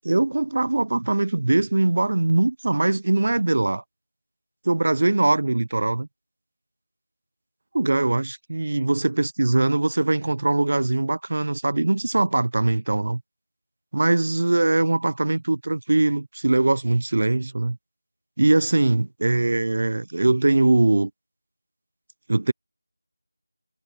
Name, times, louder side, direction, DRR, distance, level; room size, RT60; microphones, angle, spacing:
voice 1, 0.0-3.8 4.7-6.1 7.7-13.2 13.9-17.8 18.4-21.1 22.3-22.5, right 2 dB, 40° right, 0.3 m, -21 dB
figure-of-eight pair, 180°, 0 cm